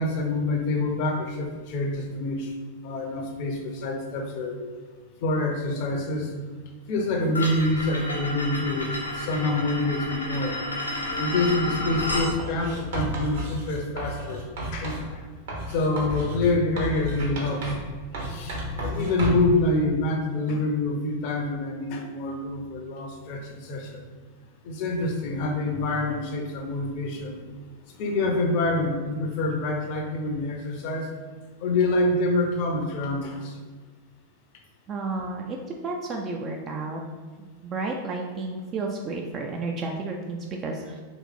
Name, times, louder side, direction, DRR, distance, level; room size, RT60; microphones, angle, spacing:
voice 1, 0.0-2.5 2.8-4.6 5.2-6.3 6.9-10.6 11.2-14.4 14.7-15.2 15.7-17.7 18.2-24.0 24.6-27.4 27.9-31.1 31.6-33.5, left 2 dB, 45° left, 3 dB, 0.6 m, -26 dB
sound 1, 7.3-12.3, left 1 dB, 80° left, 0.7 m, -31 dB
Writing, 12.4-15.1 15.5-17.9 18.1-19.5, right 1 dB, 55° right, 1.0 m, -32 dB
voice 2, 34.9-35.6 35.8-37.0 37.6-41.0, right 3 dB, 30° right, 0 dB, 0.4 m, -31 dB
3.2 x 3.1 x 3.6 m, 1.4 s
figure-of-eight pair, 90°, 0 cm